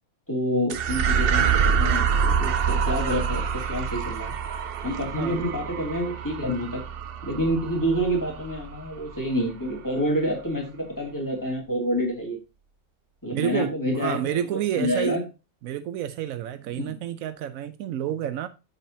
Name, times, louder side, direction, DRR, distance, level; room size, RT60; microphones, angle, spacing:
voice 1, 0.3-3.4 3.7-4.3 4.8-6.8 7.2-12.4 13.2-14.4 14.7-15.2 16.9-17.0, equal, 15° left, 2.5 m, -27 dB
sound 1, 0.7-9.3, right 7 dB, 55° right, 0.7 m, -26 dB
voice 2, 13.3-15.2 15.6-18.5, right 10 dB, 85° right, 1.0 m, -29 dB
7.2 x 6.9 x 2.7 m
omnidirectional pair, 1.4 m